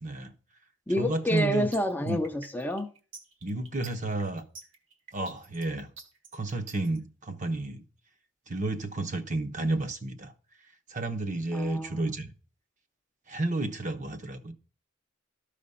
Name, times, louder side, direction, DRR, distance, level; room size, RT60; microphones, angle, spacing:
voice 1, 0.0-0.3 1.0-1.7 2.1-2.2 3.4-4.4 5.1-5.9 6.3-7.8 8.5-10.3 10.9-12.3 13.3-14.5, right 2 dB, 40° right, 0.9 m, -31 dB
voice 2, 0.9-2.9 11.5-12.1, equal, 10° left, 0.6 m, -29 dB
sound 1, 1.4-7.0, right 4 dB, 65° right, 1.7 m, -47 dB
13.0 x 5.1 x 5.5 m
head